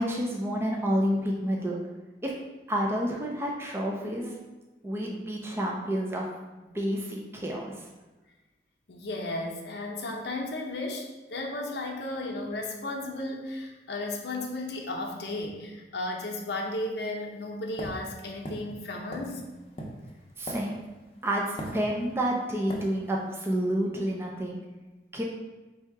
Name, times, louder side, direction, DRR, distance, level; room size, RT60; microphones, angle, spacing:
voice 1, 0.0-1.8 2.2-2.3 2.7-4.3 4.8-6.3 6.7-7.8 20.4-20.8 21.2-24.6 25.1-25.2, equal, 15° right, -1 dB, 0.4 m, -29 dB
voice 2, 8.9-19.4, left 2 dB, 70° left, 1 dB, 0.7 m, -34 dB
sound 1, 17.8-21.1 21.6-22.3 22.7-22.9, equal, 35° left, 0.6 m, -39 dB
3.5 x 2.8 x 4.6 m, 1.1 s
head